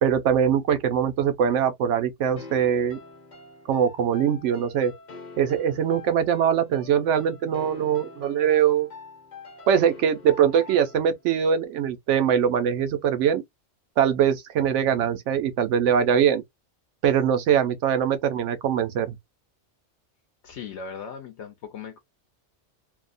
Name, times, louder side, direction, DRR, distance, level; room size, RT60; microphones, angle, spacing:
voice 1, 0.0-3.0 3.7-4.9 5.4-8.9 9.7-13.4 14.0-16.4 17.0-19.2, right 8 dB, 90° right, 1.0 m, -22 dB
sound 1, 2.4-11.2, left 4 dB, 45° left, 0.9 m, -44 dB
voice 2, 20.4-22.0, left 6 dB, 75° left, 0.9 m, -38 dB
2.7 x 2.0 x 2.5 m
omnidirectional pair, 1.2 m